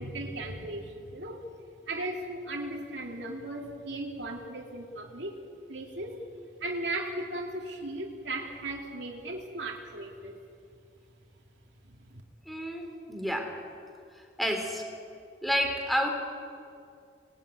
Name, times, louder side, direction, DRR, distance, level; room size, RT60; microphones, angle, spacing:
voice 1, 0.0-1.5 1.9-5.4 5.7-6.2 6.6-10.4 11.9-12.2, right 2 dB, 90° right, 0 dB, 2.9 m, -37 dB
voice 2, 12.5-13.5 14.1-14.9 15.4-16.1, equal, ahead, 3 dB, 3.1 m, -30 dB
25.0 x 20.0 x 9.7 m, 2.4 s
head